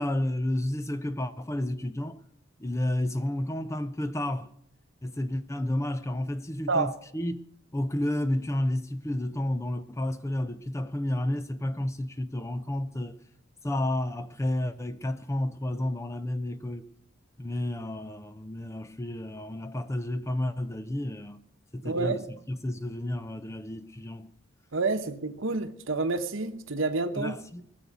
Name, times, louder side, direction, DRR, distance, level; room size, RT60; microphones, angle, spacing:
voice 1, 0.0-2.2 2.6-4.5 5.0-7.4 7.7-13.2 13.6-16.9 17.4-21.4 21.7-24.3 27.2-27.7, left 1 dB, 15° left, 0.5 m, -31 dB
voice 2, 21.8-22.2 24.7-27.3, right 3 dB, 65° right, 1.0 m, -28 dB
19.5 x 6.9 x 9.2 m
head